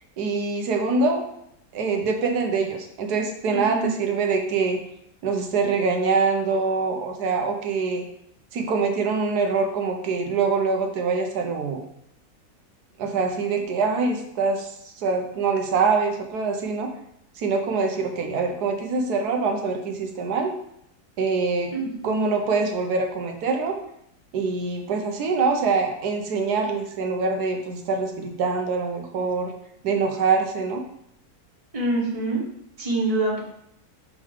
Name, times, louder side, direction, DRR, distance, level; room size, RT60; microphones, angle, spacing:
voice 1, 0.2-1.2 1.7-4.8 5.2-8.0 8.5-11.8 13.0-16.9 17.4-20.5 21.2-21.7 22.0-23.8 24.3-29.5 29.8-30.8, right 4 dB, 90° right, 3 dB, 1.4 m, -24 dB
voice 2, 3.5-3.9 21.7-22.2 31.7-32.4 32.8-33.4, right 2 dB, 25° right, -3 dB, 1.5 m, -26 dB
6.7 x 3.6 x 4.9 m, 0.74 s
omnidirectional pair, 1.6 m